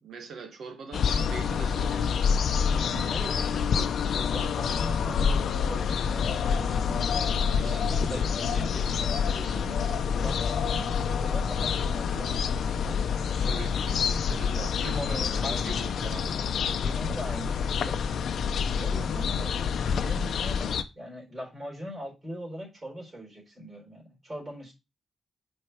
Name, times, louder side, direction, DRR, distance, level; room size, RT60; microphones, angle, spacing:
voice 1, 0.0-2.4 7.5-8.3 13.4-16.3 18.8-19.1, right 5 dB, 75° right, 1.4 m, -43 dB
sound 1, 0.9-20.8, left 6 dB, 80° left, 0.6 m, -27 dB
voice 2, 2.6-5.4 5.6-7.4 7.6-8.9 9.3-10.9 11.1-13.2 14.7-15.7 16.8-18.0 18.8-24.7, equal, 25° right, 3.9 m, -41 dB
6.3 x 4.6 x 4.5 m
wide cardioid pair, 130°, 0 cm